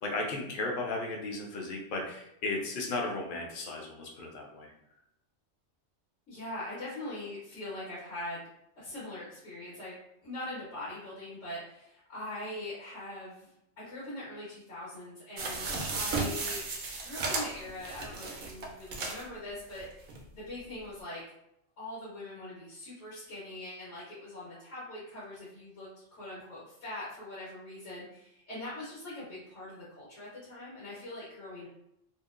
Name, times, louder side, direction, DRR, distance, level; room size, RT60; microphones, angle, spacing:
voice 1, 0.0-4.7, left 2 dB, 55° left, 0 dB, 0.6 m, -35 dB
voice 2, 6.3-8.5 8.8-13.5 13.8-16.6 17.0-21.2 21.8-31.7, left 1 dB, 80° left, -9 dB, 1.2 m, -42 dB
sound 1, 15.4-19.3 19.8-19.9 20.1-20.2, right 3 dB, 60° right, 0.6 m, -34 dB
2.7 x 2.1 x 2.3 m, 0.79 s
omnidirectional pair, 1.3 m